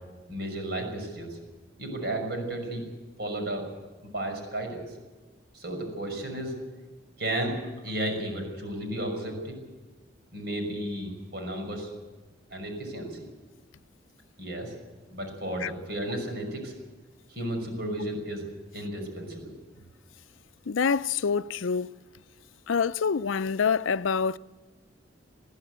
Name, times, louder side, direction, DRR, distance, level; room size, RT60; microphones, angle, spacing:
voice 1, 0.3-1.4 1.8-2.8 3.2-3.7 4.1-4.9 5.5-6.6 7.2-7.6 7.8-9.5 10.3-11.9 12.5-13.3 14.4-14.7 15.1-16.7 17.3-19.5, right 1 dB, 55° right, 6.1 m, -33 dB
voice 2, 20.7-21.9 22.7-24.4, left 6 dB, 85° left, 0.5 m, -26 dB
22.0 x 14.5 x 8.1 m
head